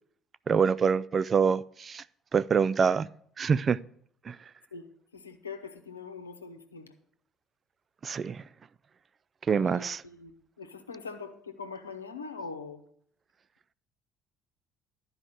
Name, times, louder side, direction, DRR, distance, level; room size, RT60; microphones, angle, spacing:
voice 1, 0.5-2.0 2.3-3.1 3.4-3.8 4.3-4.4 8.0-8.4 9.5-10.0, right 6 dB, 35° right, 0.3 m, -25 dB
voice 2, 5.1-6.9 9.6-12.8, left 4 dB, 85° left, 0.9 m, -42 dB
12.0 x 4.8 x 7.7 m
figure-of-eight pair, 55°, 0 cm